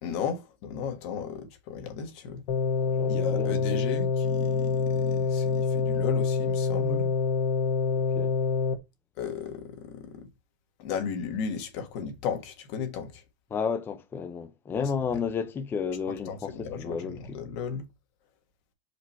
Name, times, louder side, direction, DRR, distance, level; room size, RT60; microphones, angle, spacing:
voice 1, 0.0-2.4 3.1-7.1 9.2-10.3 10.8-13.2 14.7-15.2 16.3-17.9, left 6 dB, 55° left, 1.6 m, -35 dB
sound 1, 2.5-8.7, left 5 dB, 75° left, 1.7 m, -26 dB
voice 2, 2.8-3.5 7.9-8.3 13.5-16.5 16.8-17.2, left 6 dB, 10° left, 0.5 m, -32 dB
5.1 x 4.5 x 4.5 m
supercardioid pair, 175°, 18 cm